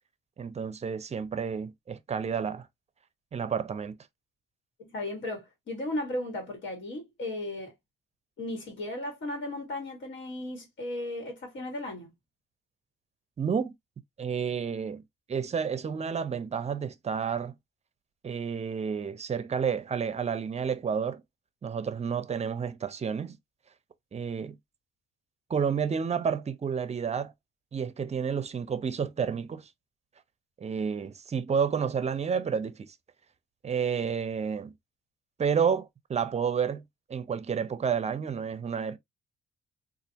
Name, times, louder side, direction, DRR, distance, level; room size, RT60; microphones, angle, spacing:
voice 1, 0.4-2.7 3.3-4.0 13.4-13.7 14.2-15.0 15.3-17.5 18.2-21.2 21.6-23.4 24.1-24.6 25.5-27.3 27.7-29.7 30.6-32.9 33.6-34.7 35.4-36.8 37.1-39.0, right 6 dB, 35° right, 0.6 m, -30 dB
voice 2, 4.8-7.7 8.4-12.1, left 1 dB, 65° left, 1.5 m, -35 dB
4.0 x 2.5 x 2.7 m
cardioid pair, 90°, 20 cm